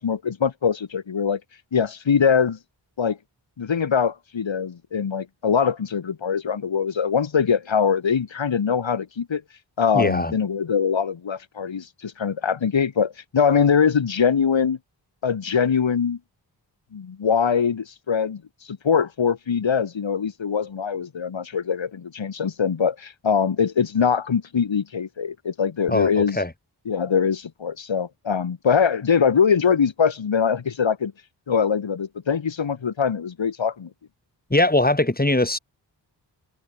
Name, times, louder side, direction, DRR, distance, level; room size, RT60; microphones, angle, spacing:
voice 1, 0.0-1.4 1.7-2.6 3.0-3.2 3.6-9.4 9.8-14.8 15.2-16.2 16.9-18.4 18.7-26.4 26.9-31.1 31.5-33.9, left 6 dB, 90° left, 7.5 m, -22 dB
voice 2, 9.9-10.3 25.9-26.5 34.5-35.6, left 2 dB, 20° left, 7.9 m, -21 dB
cardioid pair, 50°, 44 cm